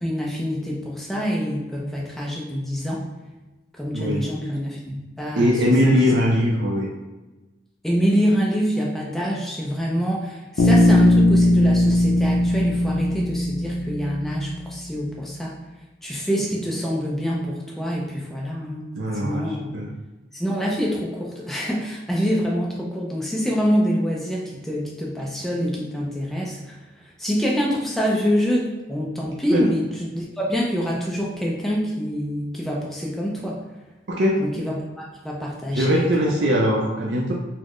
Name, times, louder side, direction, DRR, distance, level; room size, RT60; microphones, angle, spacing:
voice 1, 0.0-3.1 3.7-6.1 7.8-15.5 16.0-18.9 19.1-19.8 20.3-33.6 34.4-36.4, equal, ahead, -3 dB, 0.4 m, -26 dB
voice 2, 3.9-4.2 5.4-6.9 18.9-19.9 29.5-29.6 34.1-34.5 35.7-37.3, equal, 60° right, -3 dB, 0.4 m, -21 dB
Bass guitar, 10.6-14.5, left 1 dB, 65° left, 0.5 m, -18 dB
4.1 x 2.0 x 3.0 m, 1.1 s
head